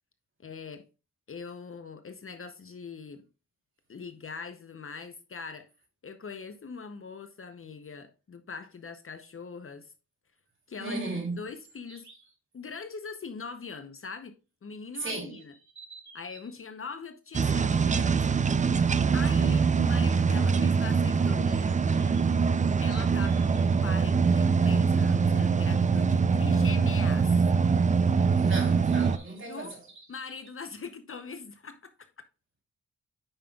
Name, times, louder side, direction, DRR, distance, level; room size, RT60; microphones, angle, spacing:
voice 1, 0.4-0.8 1.3-3.2 3.9-5.7 6.0-9.9 10.7-11.0 11.3-12.1 12.5-14.3 14.6-15.5 16.1-18.2 19.1-21.8 22.8-27.4 29.5-29.7 30.1-31.9, left 5 dB, 45° left, 0.7 m, -41 dB
voice 2, 10.8-11.4 15.0-15.4 28.4-29.8, right 3 dB, 40° right, 3.2 m, -35 dB
sound 1, 11.3-12.3 15.2-16.5 21.3-23.9 28.3-30.5, right 4 dB, 65° right, 3.0 m, -54 dB
sound 2, 17.3-29.2, right 5 dB, 25° right, 0.4 m, -24 dB
8.9 x 5.4 x 2.3 m
cardioid pair, 90°, 31 cm